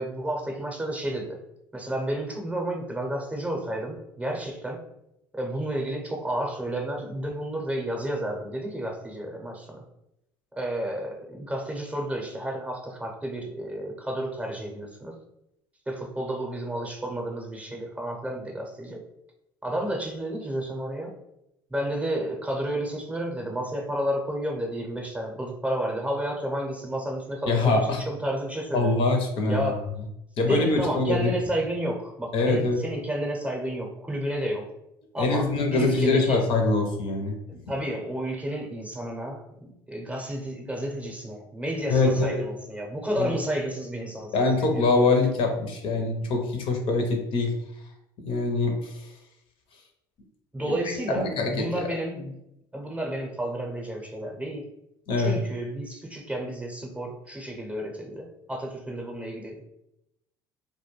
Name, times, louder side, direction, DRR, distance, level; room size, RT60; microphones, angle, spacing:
voice 1, 0.0-1.4 1.7-4.8 5.3-9.8 10.5-15.2 15.9-19.1 19.6-21.1 21.7-29.0 29.5-29.8 30.5-34.6 35.1-36.5 37.7-44.9 50.5-52.3 52.7-54.6 55.2-59.6, right 1 dB, 10° right, 1 dB, 0.6 m, -31 dB
voice 2, 27.5-28.0 28.7-29.7 30.4-31.3 32.3-32.8 35.2-37.4 37.6-37.7 41.9-42.4 43.2-43.3 44.3-47.5 48.2-49.0 50.6-50.7 51.1-51.9 55.1-55.4, left 3 dB, 55° left, 3 dB, 0.6 m, -24 dB
2.2 x 2.2 x 3.1 m, 0.84 s
hypercardioid pair, 75°, 11 cm